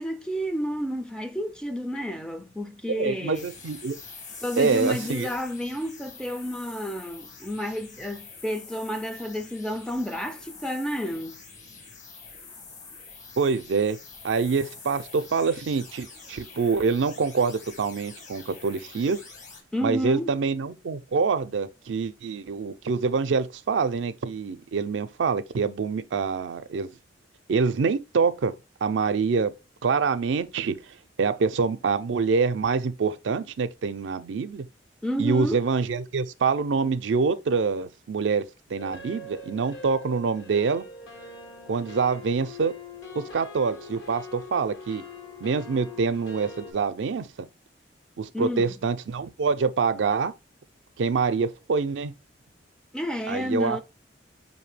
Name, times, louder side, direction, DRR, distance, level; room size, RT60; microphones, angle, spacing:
voice 1, 0.0-3.5 4.4-11.4 19.7-20.4 35.0-35.7 48.3-48.7 52.9-53.8, equal, 5° left, 0.4 m, -30 dB
voice 2, 2.9-4.0 4.6-5.3 13.4-14.0 14.2-19.2 19.8-26.9 27.5-28.5 28.8-29.5 29.8-30.7 31.2-34.7 35.2-38.4 38.7-40.8 41.7-42.7 43.3-45.0 45.4-47.5 48.2-50.3 51.0-52.1 53.3-53.8, right 5 dB, 80° right, 0.4 m, -25 dB
sound 1, 3.3-19.6, left 4 dB, 45° left, 1.0 m, -45 dB
sound 2, 38.8-46.7, left 2 dB, 80° left, 1.5 m, -43 dB
5.1 x 2.7 x 3.2 m
head